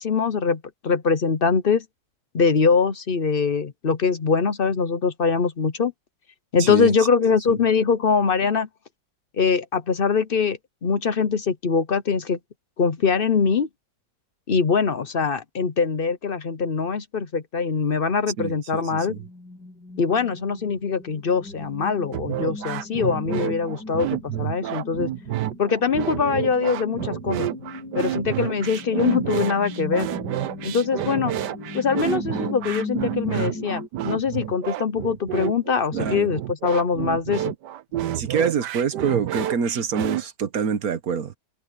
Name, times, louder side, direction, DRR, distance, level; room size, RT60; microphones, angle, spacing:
voice 1, 0.0-1.8 2.3-5.9 6.5-8.7 9.4-12.4 12.8-13.7 14.5-19.2 20.0-25.1 25.6-27.5 27.9-30.1 30.6-31.3 31.7-37.4, left 5 dB, 45° left, 0.8 m, -23 dB
voice 2, 6.6-6.9 7.5-7.6 18.4-19.2 26.2-26.4 35.9-36.4 38.1-41.3, right 6 dB, 60° right, 1.5 m, -26 dB
sound 1, 18.9-33.9, left 2 dB, 90° left, 6.7 m, -38 dB
sound 2, 22.1-40.2, right 12 dB, 90° right, 1.4 m, -29 dB
omnidirectional pair, 1.8 m